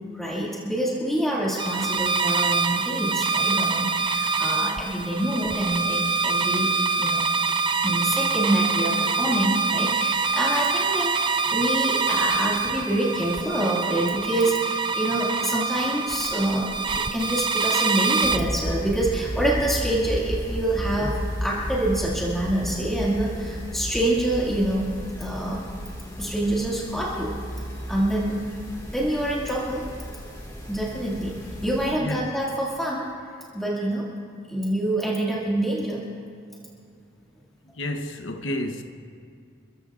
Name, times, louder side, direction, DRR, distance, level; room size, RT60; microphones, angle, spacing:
voice 1, 0.1-6.7 7.0-7.3 7.8-24.9 25.2-25.7 26.2-27.3 27.9-28.4 28.9-29.8 30.7-31.3 31.6-33.1 33.5-34.1 34.4-36.0, right 1 dB, ahead, 2.1 m, -26 dB
sound 1, 1.6-18.4, right 4 dB, 25° right, 0.4 m, -25 dB
sound 2, 18.2-31.9, equal, 15° left, 1.9 m, -33 dB
voice 2, 31.9-32.3 37.8-38.8, left 1 dB, 65° left, 0.9 m, -30 dB
28.5 x 15.0 x 2.5 m
head